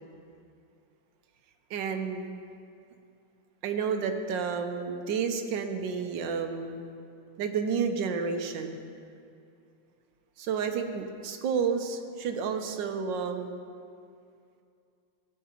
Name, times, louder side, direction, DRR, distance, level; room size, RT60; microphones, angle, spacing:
voice 1, 1.7-2.3 3.6-6.9 7.4-8.8 10.4-13.5, right 6 dB, 70° right, 6 dB, 1.4 m, -30 dB
16.5 x 9.4 x 2.9 m, 2.5 s
omnidirectional pair, 2.1 m